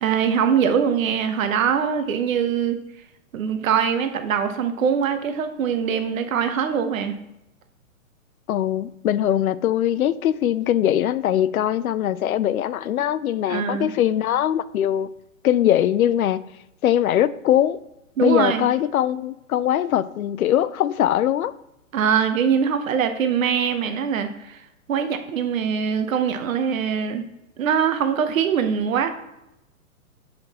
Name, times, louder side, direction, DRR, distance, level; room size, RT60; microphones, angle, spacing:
voice 1, 0.0-2.8 3.3-7.2 13.5-13.9 18.2-18.7 21.9-24.6 24.9-27.2 27.6-29.1, right 7 dB, 65° right, 8 dB, 0.9 m, -22 dB
voice 2, 8.5-15.1 15.4-16.4 16.8-17.8 18.2-21.5, left 11 dB, 75° left, 16 dB, 0.5 m, -21 dB
7.7 x 5.8 x 2.9 m, 0.86 s
hypercardioid pair, 140°, 43 cm